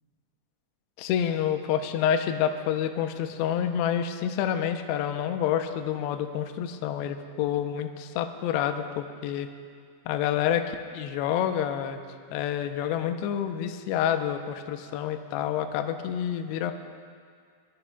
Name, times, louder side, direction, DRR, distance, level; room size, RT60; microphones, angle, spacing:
voice 1, 1.0-9.5 10.1-12.0 12.3-16.7, left 9 dB, 85° left, 6 dB, 2.5 m, -28 dB
30.0 x 10.5 x 2.3 m, 2.1 s
omnidirectional pair, 5.6 m